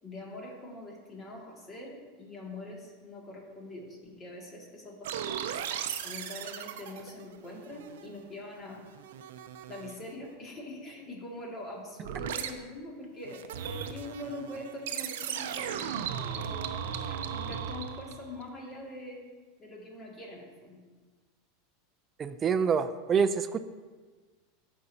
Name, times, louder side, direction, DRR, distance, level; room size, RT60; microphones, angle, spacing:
voice 1, 0.0-5.4 6.0-8.8 9.7-15.9 16.2-19.2 19.6-20.8, left 1 dB, 25° left, -2 dB, 2.2 m, -43 dB
sound 1, 5.0-8.3 8.6-10.1 12.0-12.5 13.2-18.4, right 8 dB, 80° right, 0.6 m, -37 dB
voice 2, 22.2-23.6, right 6 dB, 25° right, 11 dB, 0.4 m, -26 dB
13.5 x 5.3 x 2.8 m, 1.4 s
supercardioid pair, 120°, 0 cm